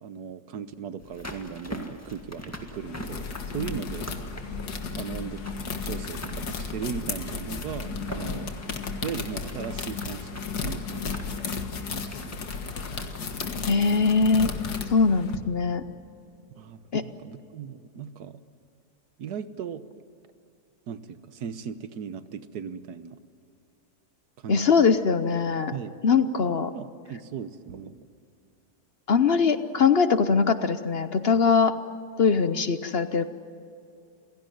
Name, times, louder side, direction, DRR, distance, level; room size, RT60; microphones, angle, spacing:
voice 1, 0.0-3.3 3.5-4.1 5.0-8.5 9.0-12.4 16.5-18.4 19.2-19.8 20.9-23.2 24.4-25.0 25.7-25.9 26.7-28.1, right 7 dB, 85° right, 12 dB, 1.6 m, -38 dB
sound 1, 1.0-15.0 15.3-15.4, left 1 dB, 10° left, 1.8 m, -44 dB
sound 2, 2.1-8.4, left 1 dB, 30° left, 1.8 m, -41 dB
sound 3, 2.7-15.4, left 5 dB, 85° left, 2.1 m, -34 dB
voice 2, 13.6-14.5 14.9-15.8 16.9-17.0 24.5-25.7 26.0-26.7 29.1-31.7 32.2-33.3, left 5 dB, 50° left, 11 dB, 0.9 m, -21 dB
28.5 x 17.0 x 9.3 m, 2.4 s
omnidirectional pair, 1.7 m